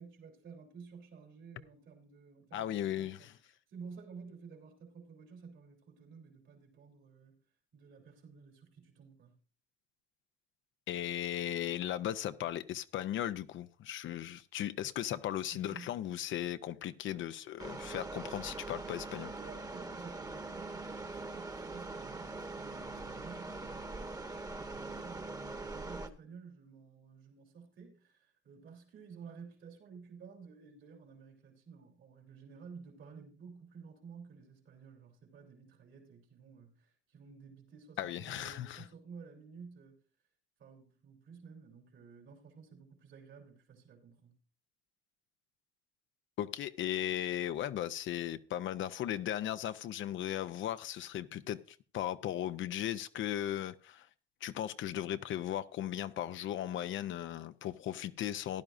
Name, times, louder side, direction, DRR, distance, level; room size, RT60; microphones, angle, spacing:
voice 1, 0.0-7.4 7.7-9.4 15.5-16.0 19.4-40.0 40.6-44.3, right 5 dB, 75° right, 3.2 m, -53 dB
voice 2, 2.5-3.4 10.9-19.3 38.0-38.9 46.4-54.1 54.4-58.6, left 11 dB, 75° left, 0.6 m, -37 dB
sound 1, 17.6-26.1, right 3 dB, 20° right, 1.1 m, -42 dB
15.5 x 10.5 x 2.6 m
cardioid pair, 90°, 20 cm